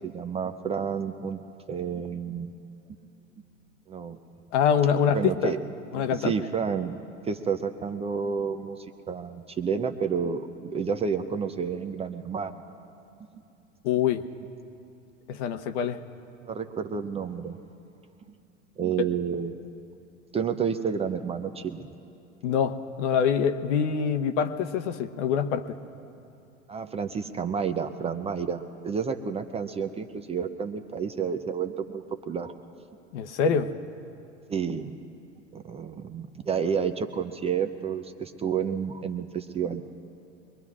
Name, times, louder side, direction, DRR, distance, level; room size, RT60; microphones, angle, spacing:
voice 1, 0.0-1.4 1.7-2.5 3.9-4.2 5.1-5.6 6.0-12.6 16.5-17.6 18.8-19.7 20.3-21.9 26.7-32.5 34.5-34.9 35.5-39.8, right 6 dB, 15° right, 8 dB, 0.5 m, -30 dB
voice 2, 4.5-5.5 5.9-6.3 13.8-14.2 15.3-16.0 22.4-25.6 33.1-33.7, left 7 dB, 65° left, 9 dB, 0.9 m, -25 dB
23.5 x 21.5 x 2.4 m, 2.7 s
hypercardioid pair, 100°, 39 cm